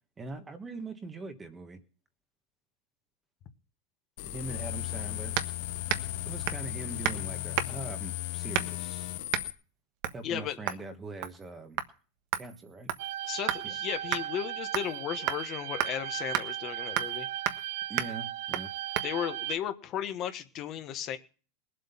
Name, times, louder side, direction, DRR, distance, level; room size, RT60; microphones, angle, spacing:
voice 1, 0.2-1.8 4.2-5.4 6.2-9.2 10.1-11.8 12.3-12.9 13.6-13.8 17.9-18.7, right 3 dB, 10° right, 8 dB, 1.4 m, -42 dB
sound 1, 4.2-9.5, left 16 dB, 55° left, 0.9 m, -36 dB
sound 2, 5.4-5.6 5.9-6.1 6.5-6.7 7.0-7.2 7.6-7.9 8.5-8.9 9.3-9.5 10.0-10.2 10.7-10.9 11.2-11.5 11.8-11.9 12.3-13.7 14.1-14.2 14.7-15.0 15.3-15.4 15.8-15.9 16.3-16.5 17.0-17.2 17.5-17.7 18.0-18.1 18.5-18.7 19.0-19.1, right 12 dB, 50° right, 1.3 m, -32 dB
voice 2, 10.2-10.6 13.3-17.3 19.0-21.2, left 10 dB, 30° left, 8 dB, 1.3 m, -35 dB
sound 3, 13.0-19.6, right 13 dB, 65° right, 0.7 m, -37 dB
20.5 x 7.9 x 5.6 m, 0.38 s
supercardioid pair, 170°, 0 cm